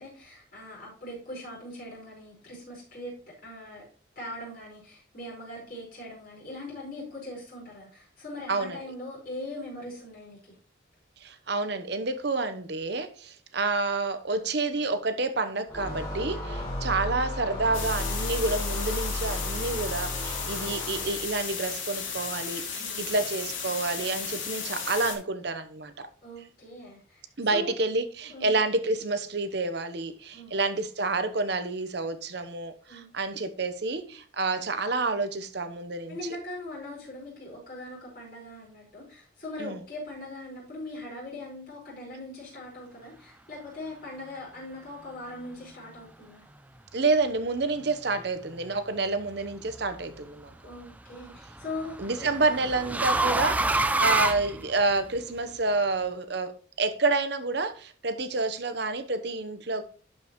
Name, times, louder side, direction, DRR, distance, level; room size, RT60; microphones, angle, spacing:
voice 1, 0.0-3.1 3.4-3.8 4.1-10.5 22.8-23.1 26.2-27.2 27.5-27.7 28.3-28.5 30.3-30.6 32.9-33.1 36.1-46.4 50.6-52.3 53.9-54.0, left 1 dB, 45° left, 4.9 m, -41 dB
voice 2, 8.5-8.8 11.2-25.9 27.4-36.2 39.6-39.8 46.9-50.5 52.0-59.8, right 3 dB, 55° right, 0.9 m, -29 dB
sound 1, 15.7-21.4, left 1 dB, 20° left, 4.1 m, -34 dB
sound 2, 17.7-25.2, left 6 dB, 85° left, 3.0 m, -35 dB
sound 3, 49.3-49.8 51.2-55.2, right 2 dB, 10° right, 0.4 m, -27 dB
12.0 x 5.5 x 3.1 m
head